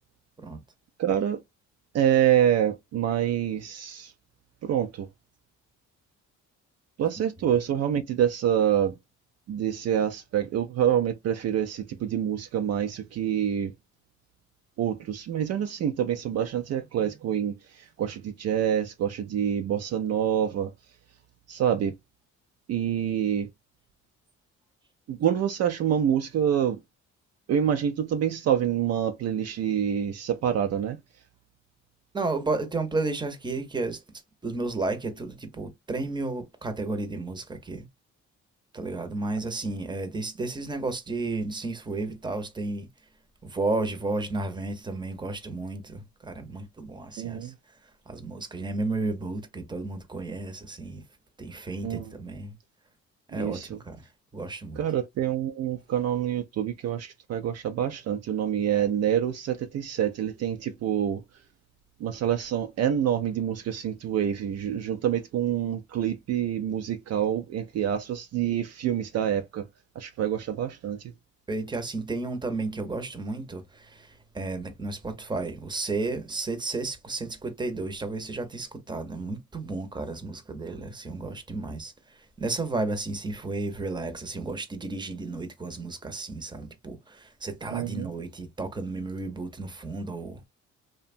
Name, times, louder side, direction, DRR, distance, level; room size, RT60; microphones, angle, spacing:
voice 1, 1.0-1.4 1.9-4.1 4.6-5.1 7.0-8.9 9.5-13.7 14.8-20.7 21.5-21.9 22.7-23.5 25.1-26.8 27.5-31.0 47.2-47.5 51.8-52.1 53.3-53.8 54.8-61.2 62.0-69.7 70.0-71.1 87.7-88.1, right 9 dB, 55° right, 0.4 m, -26 dB
voice 2, 32.1-34.0 34.4-37.9 38.7-42.9 43.4-47.5 47.8-51.0 51.4-52.6 53.3-54.8 71.5-90.5, right 3 dB, 15° right, 0.7 m, -33 dB
2.8 x 2.2 x 2.5 m
cardioid pair, 90°, 30 cm